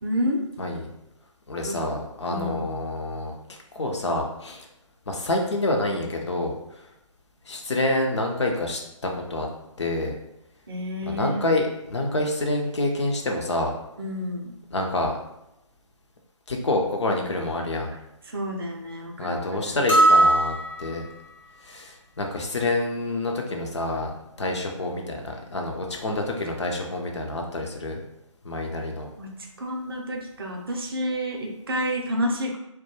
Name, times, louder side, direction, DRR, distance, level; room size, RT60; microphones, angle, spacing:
voice 1, 0.0-0.4 1.6-1.8 2.3-2.5 10.7-11.4 14.0-14.5 18.3-19.8 29.2-29.3 29.6-32.6, equal, 45° right, 1 dB, 0.5 m, -29 dB
voice 2, 1.5-4.7 5.1-6.6 7.5-9.5 9.8-10.1 11.1-13.7 14.7-15.2 16.5-17.9 19.2-21.1 21.6-28.0 28.4-29.1, left 2 dB, 60° left, 2 dB, 0.5 m, -27 dB
sound 1, 19.9-21.2, right 2 dB, 75° left, 1.0 m, -19 dB
2.2 x 2.1 x 2.9 m, 0.86 s
figure-of-eight pair, 145°, 17 cm